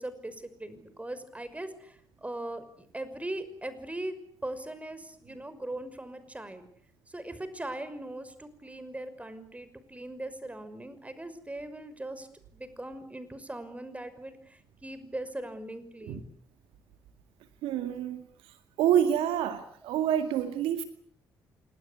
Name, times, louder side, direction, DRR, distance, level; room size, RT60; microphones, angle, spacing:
voice 1, 0.0-4.2 4.4-6.6 7.1-12.3 12.5-16.2, right 1 dB, 15° right, 12 dB, 5.8 m, -40 dB
voice 2, 17.6-18.2 18.8-20.8, right 10 dB, 70° right, 9 dB, 2.1 m, -27 dB
28.0 x 20.0 x 8.4 m, 0.62 s
hypercardioid pair, 45°, 9 cm